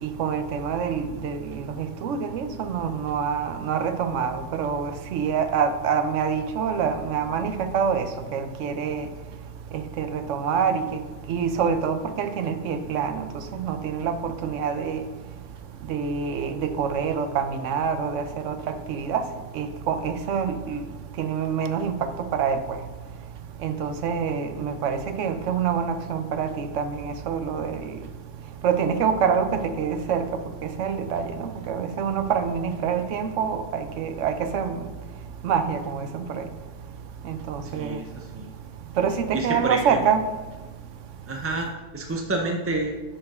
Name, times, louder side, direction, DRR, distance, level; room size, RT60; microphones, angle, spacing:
voice 1, 0.0-8.0 8.3-9.1 10.0-10.8 11.3-15.0 15.9-19.2 19.5-20.8 21.2-22.8 23.6-27.9 28.6-30.2 30.8-34.8 35.4-36.4 37.3-38.0 39.0-40.2, right 6 dB, 80° right, 9 dB, 1.0 m, -26 dB
voice 2, 37.7-38.5 39.3-40.0 41.3-41.7 41.9-42.9, right 2 dB, 20° right, 1 dB, 0.4 m, -28 dB
7.6 x 4.4 x 5.5 m, 1.3 s
omnidirectional pair, 1.3 m